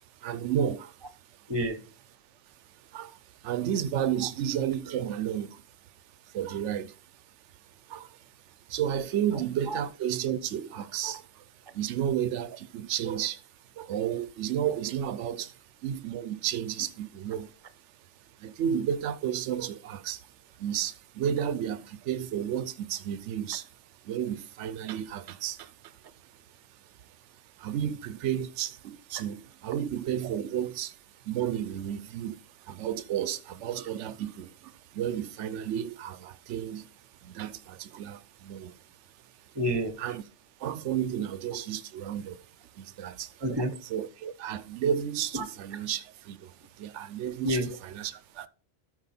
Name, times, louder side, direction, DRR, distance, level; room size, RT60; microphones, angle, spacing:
voice 1, 0.1-1.5 2.5-13.5 13.7-39.6 40.0-40.2 40.6-43.4 43.9-48.5, right 9 dB, 80° right, 0.9 m, -33 dB
voice 2, 1.5-1.8 9.3-9.8 39.5-40.2 43.4-43.8 45.3-45.5 47.4-47.8, right 1 dB, 25° right, 1.0 m, -30 dB
13.5 x 4.5 x 4.2 m
omnidirectional pair, 1.2 m